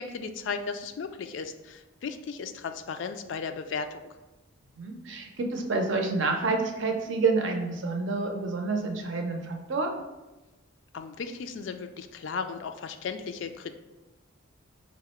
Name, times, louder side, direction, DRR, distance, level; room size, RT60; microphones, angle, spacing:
voice 1, 0.0-4.0 10.9-13.7, left 5 dB, 60° left, 8 dB, 0.3 m, -35 dB
voice 2, 4.8-9.9, right 3 dB, 60° right, 3 dB, 0.6 m, -28 dB
4.7 x 2.1 x 4.2 m, 1.1 s
head